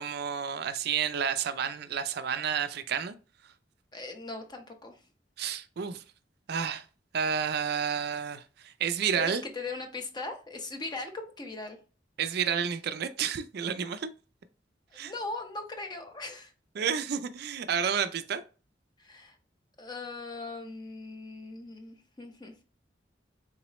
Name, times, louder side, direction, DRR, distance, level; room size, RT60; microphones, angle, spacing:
voice 1, 0.0-3.2 5.4-6.0 6.5-6.8 7.1-9.4 12.2-14.1 14.9-15.1 16.8-18.4, right 7 dB, 60° right, 0.4 m, -30 dB
voice 2, 3.9-5.0 9.1-11.8 14.9-16.5 19.0-19.4 19.8-22.6, left 3 dB, 25° left, 0.7 m, -39 dB
3.8 x 3.0 x 2.9 m
head